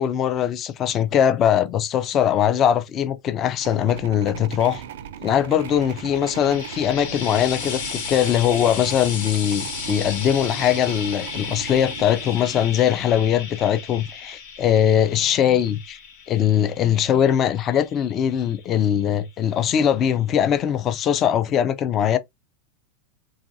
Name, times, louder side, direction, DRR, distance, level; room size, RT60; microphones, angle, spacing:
voice 1, 0.0-4.8 5.2-16.0 16.3-22.2, left 9 dB, 30° left, 0.3 m, -21 dB
sound 1, 3.5-12.9, right 9 dB, 75° right, 0.4 m, -38 dB
Frying (food), 5.7-19.1 20.1-20.2, left 6 dB, 70° left, 1.2 m, -35 dB
3.0 x 2.4 x 2.6 m
supercardioid pair, 135°, 0 cm